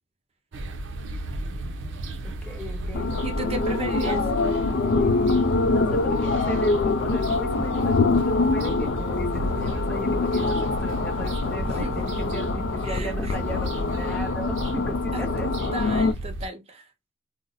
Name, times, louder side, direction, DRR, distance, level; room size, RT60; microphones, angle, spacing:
sound 1, 0.5-16.5, right 1 dB, 75° right, 0.5 m, -33 dB
voice 1, 2.2-3.3 3.6-4.4 5.0-16.1, equal, 10° left, 0.6 m, -36 dB
sound 2, 2.9-16.1, left 3 dB, 60° left, 0.3 m, -25 dB
voice 2, 3.2-4.2 11.7-12.3 12.8-13.3 15.1-16.8, right 1 dB, 35° right, 0.6 m, -35 dB
2.6 x 2.0 x 3.8 m
head